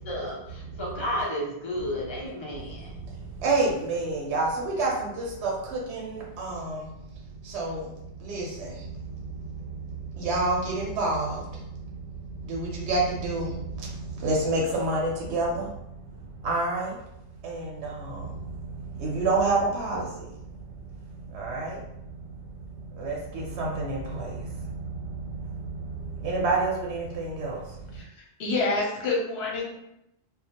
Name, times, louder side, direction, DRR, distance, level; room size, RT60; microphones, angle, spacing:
voice 1, 0.0-3.0, left 1 dB, 40° left, -4 dB, 0.4 m, -32 dB
voice 2, 0.6-1.0 2.5-17.0 17.4-28.0, right 3 dB, 85° right, -3 dB, 0.9 m, -30 dB
voice 3, 28.4-29.8, left 3 dB, 80° left, -2 dB, 0.9 m, -27 dB
2.2 x 2.0 x 2.7 m, 0.83 s
omnidirectional pair, 1.1 m